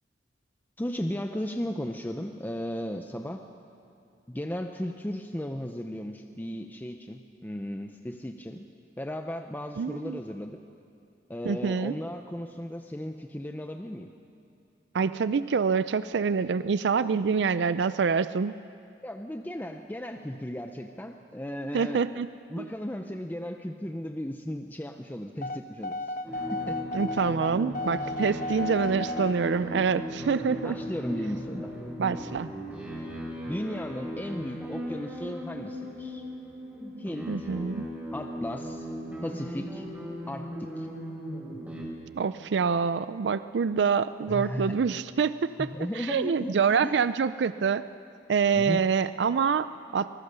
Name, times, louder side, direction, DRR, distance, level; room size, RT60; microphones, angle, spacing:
voice 1, 0.8-3.4 4.3-8.7 9.0-10.6 11.3-14.1 19.0-22.0 22.5-26.1 26.5-26.8 30.6-31.7 33.5-36.2 37.0-37.5 38.1-38.9 39.2-39.9 40.3-40.9 44.3-44.9 45.6-46.6 46.8-47.0 48.5-48.8, equal, 10° left, 5 dB, 0.7 m, -35 dB
voice 2, 9.8-10.2 11.4-12.0 14.9-18.5 21.7-22.3 22.6-22.7 26.9-30.8 31.1-31.2 32.0-32.5 37.3-37.9 42.2-45.7 46.0-47.8 48.3-50.1, right 5 dB, 75° right, 14 dB, 0.4 m, -26 dB
sound 1, 25.4-29.4, left 2 dB, 50° left, 1.0 m, -33 dB
sound 2, 26.2-41.8, equal, 10° right, 5.1 m, -37 dB
25.0 x 20.0 x 6.8 m, 2.5 s
head